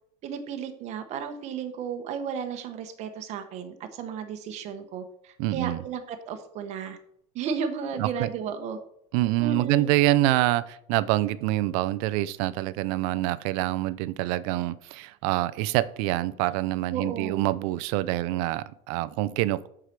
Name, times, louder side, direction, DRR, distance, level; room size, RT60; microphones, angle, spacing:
voice 1, 0.2-7.0 7.3-8.8 9.4-9.9 16.9-17.5, right 6 dB, 35° right, 7 dB, 1.0 m, -34 dB
voice 2, 5.4-5.8 8.0-8.3 9.1-19.7, right 16 dB, 65° right, 17 dB, 0.5 m, -26 dB
8.1 x 4.9 x 5.9 m, 0.70 s
cardioid pair, 175°, 19 cm